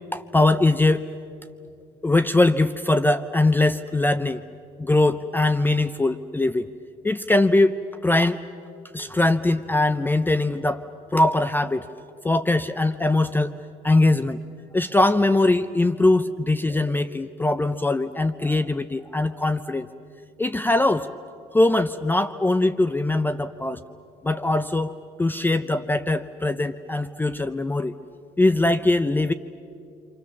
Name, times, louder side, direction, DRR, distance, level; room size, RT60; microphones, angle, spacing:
voice 1, 0.1-1.1 2.0-4.4 4.8-6.7 7.0-7.8 8.0-8.4 8.9-10.8 11.1-11.9 12.2-13.5 13.8-14.4 14.7-19.9 20.4-21.1 21.5-23.8 24.2-24.9 25.2-27.9 28.4-29.3, left 2 dB, 10° left, 13 dB, 0.6 m, -21 dB
30.0 x 25.0 x 7.1 m, 2.5 s
cardioid pair, 110°, 17 cm